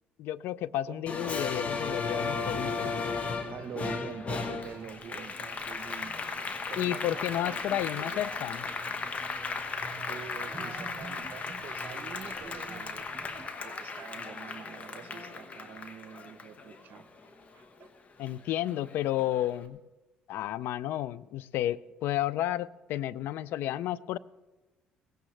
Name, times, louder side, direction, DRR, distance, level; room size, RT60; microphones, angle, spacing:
voice 1, 0.2-2.9 6.8-8.6 18.2-19.8 20.3-24.2, left 13 dB, 70° left, 20 dB, 0.4 m, -32 dB
Applause, 1.1-17.9 18.3-19.4, left 4 dB, 40° left, 1.2 m, -36 dB
voice 2, 3.5-6.2 6.7-8.5 10.0-13.1 13.6-17.1 17.5-17.9, right 8 dB, 60° right, 13 dB, 0.7 m, -45 dB
sound 1, 4.5-13.5, right 3 dB, 20° right, 4.7 m, -49 dB
17.5 x 15.5 x 3.3 m, 1.1 s
supercardioid pair, 75°, 4 cm